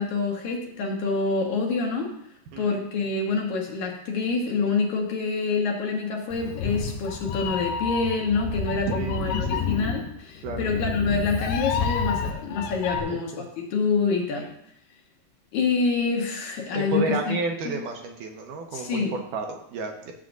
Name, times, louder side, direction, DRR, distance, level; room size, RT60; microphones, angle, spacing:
voice 1, 0.0-2.1 2.6-14.5 15.5-17.4 17.7-17.8 18.7-19.1, left 4 dB, 65° left, 0 dB, 2.4 m, -26 dB
Meow, 6.3-13.0, left 6 dB, 90° left, 2.5 m, -29 dB
voice 2, 8.9-9.2 9.5-9.6 10.4-10.7 12.9-13.4 16.7-20.1, right 3 dB, 75° right, 2 dB, 2.4 m, -31 dB
12.5 x 7.4 x 2.6 m, 0.75 s
omnidirectional pair, 3.9 m